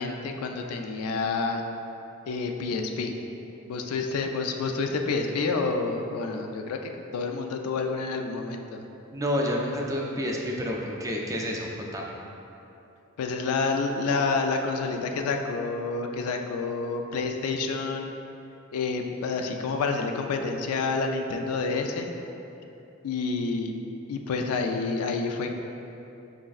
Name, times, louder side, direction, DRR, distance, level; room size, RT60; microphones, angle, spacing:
voice 1, 0.0-1.6 2.3-3.2 3.7-6.8 7.1-8.8 13.2-18.2 18.7-22.1 23.0-23.7 24.1-25.5, left 4 dB, 90° left, 4 dB, 0.3 m, -28 dB
voice 2, 9.1-12.1, equal, 15° right, -1 dB, 0.3 m, -29 dB
4.9 x 3.2 x 2.3 m, 2.9 s
head